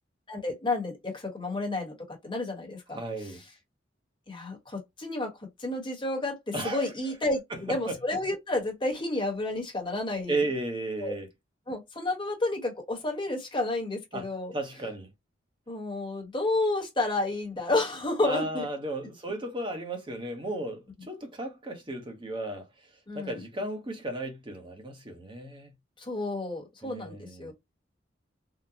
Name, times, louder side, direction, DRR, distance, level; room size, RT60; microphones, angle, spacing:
voice 1, 0.3-3.4 4.3-10.4 11.0-11.2 11.7-14.5 15.7-18.7 21.0-21.1 23.1-23.4 26.0-27.5, left 2 dB, 25° left, 1.2 m, -31 dB
voice 2, 2.9-3.4 6.5-6.9 7.9-8.0 10.3-11.3 14.1-14.3 14.5-15.1 18.2-22.7 23.1-25.7 26.8-27.5, right 1 dB, 30° right, 0.9 m, -34 dB
3.8 x 2.1 x 2.8 m
head